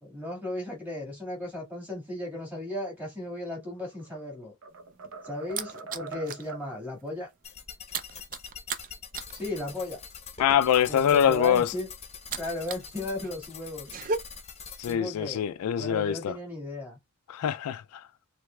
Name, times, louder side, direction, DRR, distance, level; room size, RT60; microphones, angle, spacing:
voice 1, 0.0-4.5 5.2-7.3 9.3-10.0 10.9-11.9 12.4-13.9 14.9-15.5 15.8-17.0, left 1 dB, 10° right, 1.8 m, -35 dB
sound 1, 3.7-4.2 4.6-6.7, right 3 dB, 65° right, 0.7 m, -43 dB
sound 2, 4.7-6.5 6.9-7.1 7.3-12.9 13.2-14.2, right 4 dB, 35° right, 0.4 m, -37 dB
sound 3, 7.4-14.9, left 6 dB, 30° left, 0.8 m, -44 dB
voice 2, 10.4-11.7 14.8-16.4 17.3-18.0, left 9 dB, 85° left, 0.3 m, -24 dB
4.6 x 3.3 x 2.2 m
head